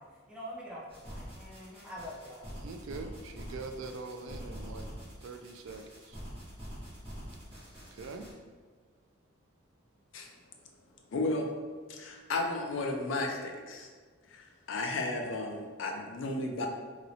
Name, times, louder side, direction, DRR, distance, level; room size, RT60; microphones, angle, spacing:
voice 1, 0.0-2.5, equal, 5° right, -5 dB, 0.5 m, -45 dB
sound 1, 0.9-8.3, equal, 30° right, 1.2 m, -45 dB
voice 2, 2.6-4.9 5.2-6.2 7.5-8.3, right 3 dB, 70° right, 6 dB, 0.3 m, -43 dB
voice 3, 11.1-11.5 11.9-13.9 14.3-16.7, left 2 dB, 65° left, 2 dB, 0.4 m, -34 dB
3.0 x 2.9 x 2.6 m, 1.5 s
head